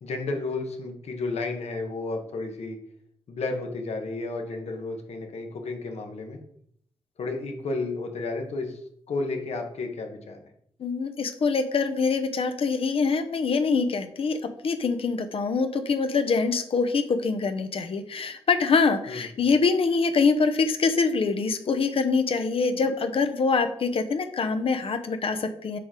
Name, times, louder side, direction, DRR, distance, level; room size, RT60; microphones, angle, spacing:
voice 1, 0.0-2.8 3.3-6.4 7.2-8.8 9.1-10.4 19.1-19.2, left 3 dB, 75° left, 3 dB, 1.2 m, -32 dB
voice 2, 10.8-25.8, left 4 dB, 60° left, 8 dB, 0.8 m, -24 dB
6.9 x 4.9 x 3.8 m, 0.69 s
cardioid pair, 85°, 11 cm